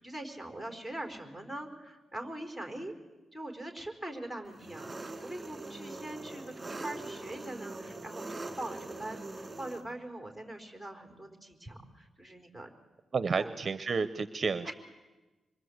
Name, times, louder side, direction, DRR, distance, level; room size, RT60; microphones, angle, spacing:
voice 1, 0.0-2.9 3.3-12.7 13.3-13.6 14.6-14.7, right 1 dB, 10° left, 4 dB, 4.4 m, -42 dB
Engine, 4.5-9.8, right 2 dB, 20° right, 3.0 m, -42 dB
voice 2, 13.1-14.7, right 5 dB, 40° right, 12 dB, 0.8 m, -31 dB
26.5 x 23.0 x 8.0 m, 1.2 s
cardioid pair, 110°, 0 cm